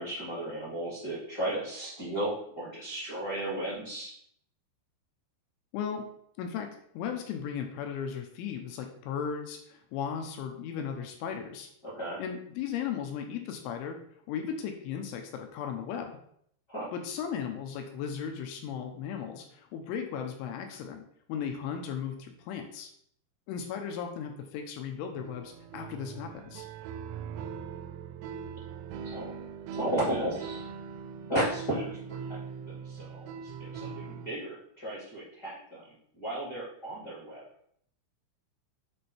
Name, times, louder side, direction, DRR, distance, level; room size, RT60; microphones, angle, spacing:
voice 1, 0.0-4.1 11.8-12.2 16.7-16.9 29.1-29.3 29.7-30.6 31.3-32.0 32.3-32.4 32.7-35.8 36.2-37.4, right 1 dB, 30° left, -8 dB, 2.0 m, -34 dB
voice 2, 5.7-6.0 6.4-11.7 12.2-14.0 14.3-16.2 16.9-21.0 21.3-22.9 23.5-26.7, left 7 dB, 80° left, 4 dB, 3.1 m, -36 dB
sound 1, 25.2-34.3, right 6 dB, 90° right, 3.4 m, -41 dB
7.8 x 4.4 x 5.0 m, 0.66 s
omnidirectional pair, 5.9 m